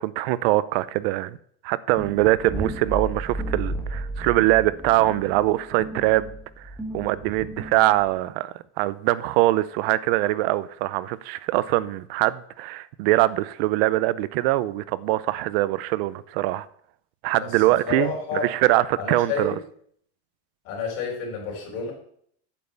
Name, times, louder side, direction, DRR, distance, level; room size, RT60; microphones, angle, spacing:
voice 1, 0.0-1.4 1.6-6.3 6.6-16.7 17.2-19.5, right 17 dB, 60° right, 0.6 m, -23 dB
sound 1, 2.0-8.2, right 1 dB, 5° right, 1.4 m, -33 dB
voice 2, 17.4-18.5 19.0-19.6 20.6-21.9, left 5 dB, 50° left, 4.2 m, -30 dB
8.4 x 5.5 x 7.9 m
cardioid pair, 180°, 33 cm